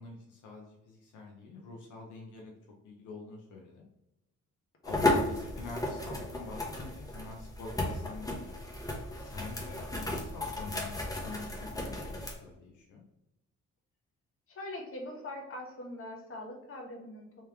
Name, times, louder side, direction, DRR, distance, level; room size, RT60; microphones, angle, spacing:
voice 1, 0.0-2.6 2.8-3.8 4.8-8.8 9.1-11.0 11.2-13.0, left 3 dB, 75° left, 0 dB, 0.8 m, -46 dB
sound 1, 4.8-12.3, left 2 dB, 10° left, 0.9 m, -34 dB
voice 2, 14.5-17.5, left 1 dB, 45° left, 1 dB, 1.2 m, -42 dB
3.3 x 3.3 x 3.4 m, 0.91 s
cardioid pair, 90°, 30 cm